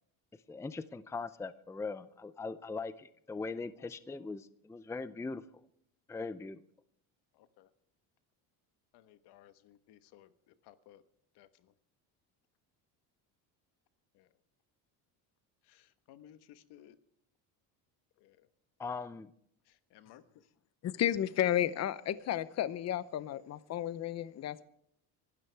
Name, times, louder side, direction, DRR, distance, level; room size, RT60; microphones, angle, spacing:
voice 1, 0.5-5.4 6.1-6.6 18.8-19.3, left 4 dB, 5° left, 13 dB, 0.5 m, -40 dB
voice 2, 3.8-4.3 7.3-7.7 8.9-11.0 11.3-11.7 14.1-14.3 15.6-17.0 18.2-18.5 19.6-20.2, left 12 dB, 75° left, 12 dB, 1.3 m, -59 dB
voice 3, 20.8-24.6, left 11 dB, 40° left, 15 dB, 0.8 m, -32 dB
25.0 x 12.5 x 3.4 m, 0.71 s
cardioid pair, 130°, 40 cm